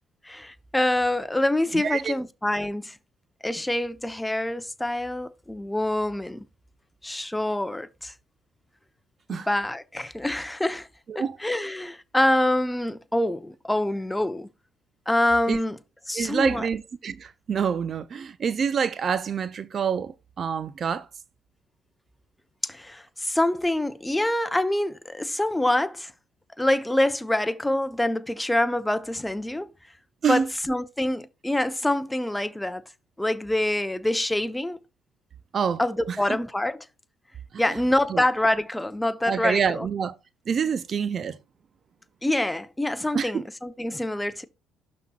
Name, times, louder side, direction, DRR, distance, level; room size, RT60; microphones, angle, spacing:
voice 1, 0.2-3.0 3.4-6.5 7.0-8.1 9.3-10.9 11.1-14.5 15.1-15.8 16.1-16.7 22.6-26.1 26.6-29.7 30.3-30.4 30.7-32.8 33.2-34.8 35.8-36.8 37.6-39.9 42.2-44.5, left 1 dB, 10° left, 0.8 m, -26 dB
voice 2, 1.7-2.1 9.3-9.5 11.1-11.4 15.5-15.6 16.1-21.1 30.2-30.5 35.5-35.8 36.1-36.4 37.5-37.7 38.1-38.2 39.3-40.2 40.5-41.4 43.1-43.5, right 6 dB, 45° right, 0.5 m, -27 dB
12.0 x 4.2 x 2.4 m
hypercardioid pair, 50°, 0 cm